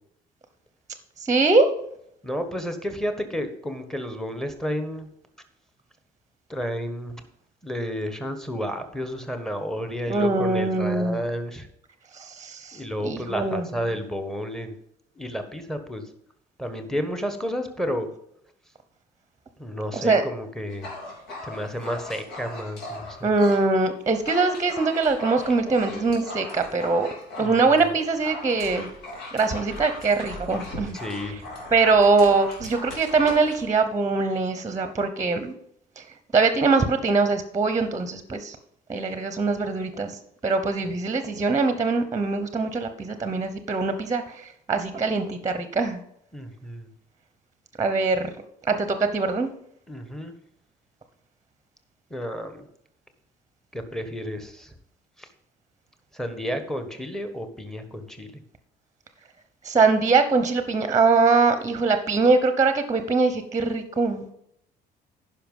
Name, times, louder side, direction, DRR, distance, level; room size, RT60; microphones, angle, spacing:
voice 1, 1.2-1.7 10.1-11.2 12.1-13.6 20.0-20.2 23.2-27.1 27.4-28.9 29.3-31.0 31.7-35.5 36.0-36.1 36.3-38.6 38.9-40.1 40.4-46.0 47.8-48.3 48.7-49.5 59.6-64.3, right 3 dB, 20° right, 10 dB, 0.9 m, -22 dB
voice 2, 2.2-5.1 6.5-7.2 7.6-11.7 12.7-14.8 15.1-16.0 16.6-18.1 19.6-20.9 21.4-23.3 27.4-27.9 30.9-31.5 46.3-46.9 49.9-50.3 52.1-52.7 53.7-54.7 55.2-55.3 56.1-58.4, equal, 5° left, 7 dB, 1.2 m, -31 dB
Dog, 20.7-23.6 24.0-33.7, left 2 dB, 80° left, 3.5 m, -39 dB
10.0 x 5.7 x 5.4 m, 0.72 s
cardioid pair, 110°, 17 cm